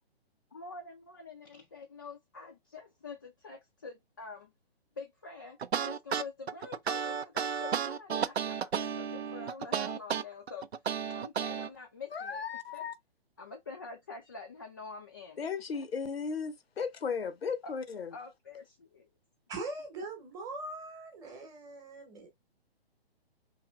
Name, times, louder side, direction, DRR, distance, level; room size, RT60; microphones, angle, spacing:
voice 1, 0.5-4.5 5.0-10.7 11.1-12.4 12.7-12.9 13.4-15.4 15.7-15.9 17.6-17.7 18.1-19.1, left 4 dB, 20° left, 0.3 m, -46 dB
sound 1, 5.6-11.7, right 7 dB, 80° right, 0.5 m, -33 dB
voice 2, 12.1-12.9 15.4-18.1, left 5 dB, 70° left, 0.7 m, -35 dB
voice 3, 19.5-22.3, right 2 dB, 10° right, 0.9 m, -41 dB
4.9 x 2.9 x 2.3 m
figure-of-eight pair, 130°, 31 cm